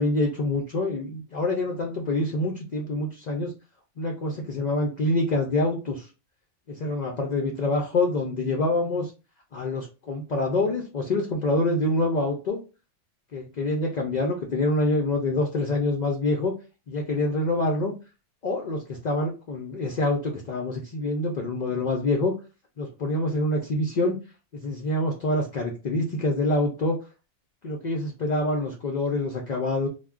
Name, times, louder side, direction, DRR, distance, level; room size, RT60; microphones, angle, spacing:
voice 1, 0.0-3.5 4.0-6.1 6.7-9.1 9.5-12.6 13.3-16.5 16.9-17.9 18.4-22.3 22.8-24.2 24.5-27.0 27.6-29.9, left 2 dB, 65° left, 1 dB, 0.4 m, -26 dB
2.3 x 2.1 x 3.5 m, 0.31 s
omnidirectional pair, 1.3 m